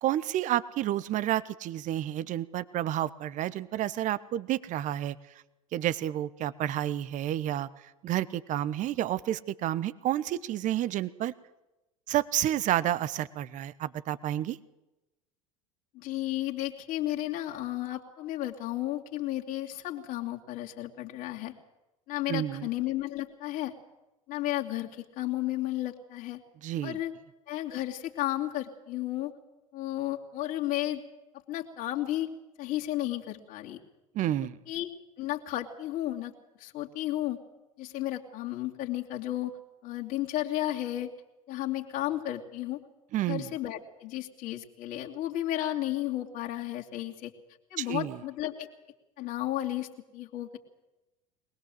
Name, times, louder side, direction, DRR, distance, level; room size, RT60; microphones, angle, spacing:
voice 1, 0.0-5.2 5.7-7.7 8.0-11.3 12.1-14.6 22.3-22.7 26.6-27.0 34.1-34.6 43.1-43.5 47.8-48.1, right 12 dB, 45° right, 17 dB, 1.1 m, -30 dB
voice 2, 15.9-21.5 22.1-23.7 24.3-26.4 26.8-27.1 27.5-29.3 29.7-31.0 31.5-32.3 32.6-33.8 34.7-34.9 35.2-36.3 36.6-37.4 37.8-39.6 39.8-41.1 41.5-42.8 43.3-47.3 47.7-48.7 49.2-49.9 50.1-50.6, left 14 dB, 50° left, 0 dB, 2.7 m, -33 dB
23.0 x 20.0 x 7.8 m, 0.99 s
figure-of-eight pair, 75°, 18 cm